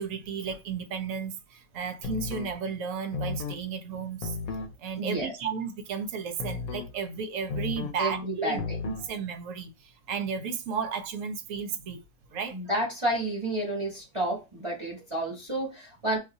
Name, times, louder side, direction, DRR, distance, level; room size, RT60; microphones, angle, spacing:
voice 1, 0.0-4.4 4.8-8.6 8.8-12.0 12.3-12.6, right 6 dB, 70° right, 0.9 m, -34 dB
sound 1, 2.0-2.5 3.1-3.6 4.2-4.7 6.4-6.9 7.5-8.0 8.6-9.1, left 4 dB, 80° left, 1.1 m, -33 dB
voice 2, 5.0-5.3 8.0-8.8 12.5-16.2, right 1 dB, 25° right, 1.0 m, -30 dB
2.6 x 2.4 x 3.8 m
omnidirectional pair, 1.5 m